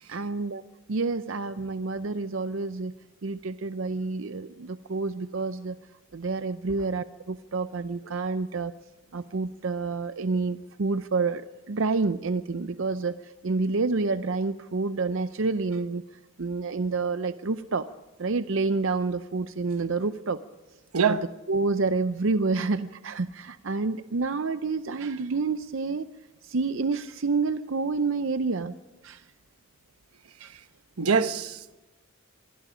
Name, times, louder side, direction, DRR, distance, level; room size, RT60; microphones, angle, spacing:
voice 1, 0.1-0.6 0.9-2.9 3.2-5.8 6.1-8.7 9.1-16.0 16.4-17.9 18.2-20.4 21.0-26.1 26.4-28.8 29.0-29.2 30.4-30.6, right 3 dB, 60° right, 0.6 m, -28 dB
voice 2, 31.0-31.8, right 6 dB, 85° right, 1.0 m, -24 dB
25.0 x 21.5 x 5.0 m
head